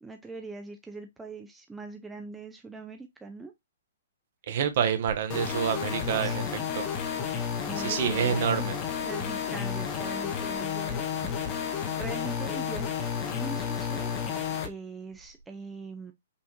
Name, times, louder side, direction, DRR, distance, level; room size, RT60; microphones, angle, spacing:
voice 1, 0.0-3.5 6.2-6.5 7.3-8.7 9.0-14.1 14.4-16.1, right 3 dB, 5° right, 0.4 m, -42 dB
voice 2, 4.5-6.4 6.8-6.9 7.8-8.8, right 8 dB, 50° right, 0.9 m, -27 dB
sound 1, 5.3-14.7, left 7 dB, 30° left, 0.7 m, -31 dB
5.5 x 2.5 x 2.9 m
hypercardioid pair, 145°, 0 cm